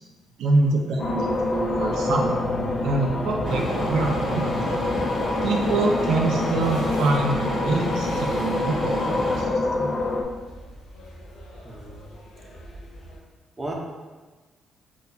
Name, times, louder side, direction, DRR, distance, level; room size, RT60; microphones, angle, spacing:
voice 1, 0.4-2.4 2.8-4.5 5.4-9.9, right 3 dB, 80° right, 1 dB, 0.4 m, -25 dB
sound 1, 1.0-10.2, left 2 dB, 35° left, 0.4 m, -27 dB
sound 2, 1.3-13.2, equal, 80° left, 0.6 m, -44 dB
sound 3, 3.4-9.4, left 1 dB, 5° right, 1.3 m, -29 dB
voice 2, 11.6-12.1 13.6-13.7, right 2 dB, 20° right, -1 dB, 0.6 m, -35 dB
4.3 x 2.3 x 2.6 m, 1.3 s
cardioid pair, 90°, 0 cm